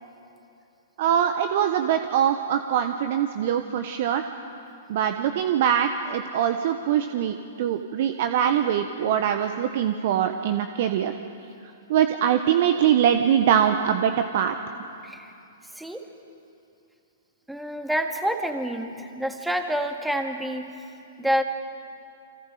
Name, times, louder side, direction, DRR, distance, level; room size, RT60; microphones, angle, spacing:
voice 1, 1.0-4.2 4.9-11.1 11.9-14.5, right 9 dB, 50° right, 7 dB, 1.2 m, -23 dB
voice 2, 15.7-16.0 17.5-20.7 21.2-21.4, equal, 5° right, 4 dB, 2.0 m, -28 dB
29.0 x 26.0 x 5.1 m, 2.7 s
figure-of-eight pair, 110°, 0 cm